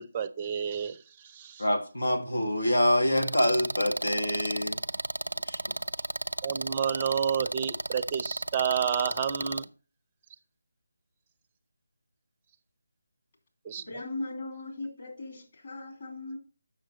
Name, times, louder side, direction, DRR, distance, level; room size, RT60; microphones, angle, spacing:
voice 1, 0.0-1.6 6.4-9.7 13.7-13.8, right 8 dB, 25° right, 0.5 m, -30 dB
voice 2, 1.6-4.8 5.5-5.6, left 1 dB, 85° left, 1.4 m, -26 dB
sound 1, 3.2-9.6, right 1 dB, 90° right, 0.4 m, -33 dB
voice 3, 13.8-16.4, left 2 dB, 45° left, 2.8 m, -38 dB
7.3 x 6.3 x 4.0 m
figure-of-eight pair, 155°, 0 cm